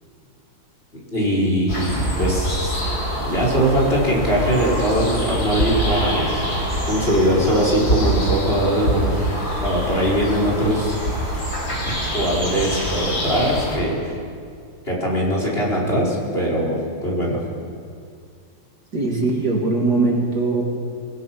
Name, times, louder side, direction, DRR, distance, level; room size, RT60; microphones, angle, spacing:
voice 1, 1.1-2.8 3.3-6.3 6.8-9.2 9.6-11.3 11.9-14.1 14.9-17.4, equal, 30° left, -3 dB, 5.1 m, -21 dB
sound 1, 1.7-13.8, equal, 50° left, 5.7 m, -25 dB
voice 2, 18.9-20.6, right 3 dB, 50° right, -1 dB, 3.2 m, -20 dB
27.0 x 20.0 x 6.1 m, 2.3 s
omnidirectional pair, 2.2 m